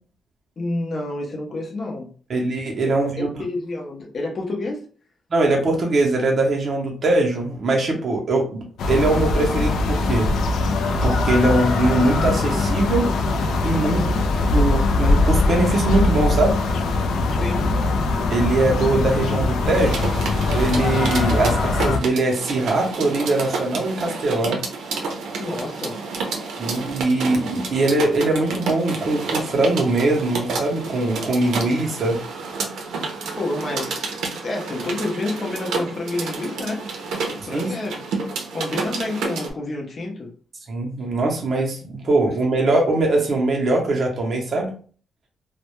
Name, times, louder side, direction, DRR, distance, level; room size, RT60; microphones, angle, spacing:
voice 1, 0.6-2.1 3.2-4.9 13.8-14.2 17.3-17.7 25.4-26.0 33.4-36.9 37.3-38.1 38.5-40.3, left 2 dB, 35° left, 0 dB, 0.5 m, -29 dB
voice 2, 2.3-3.3 5.3-10.3 11.0-13.1 13.6-14.0 14.5-16.6 18.3-24.6 26.6-32.2 37.5-37.8 40.7-44.7, right 2 dB, 35° right, -1 dB, 0.6 m, -21 dB
sound 1, 8.8-22.0, left 3 dB, 90° left, 0.3 m, -21 dB
sound 2, 19.7-39.5, right 4 dB, 85° right, 0.5 m, -30 dB
2.2 x 2.0 x 2.9 m, 0.41 s
wide cardioid pair, 170°, 0 cm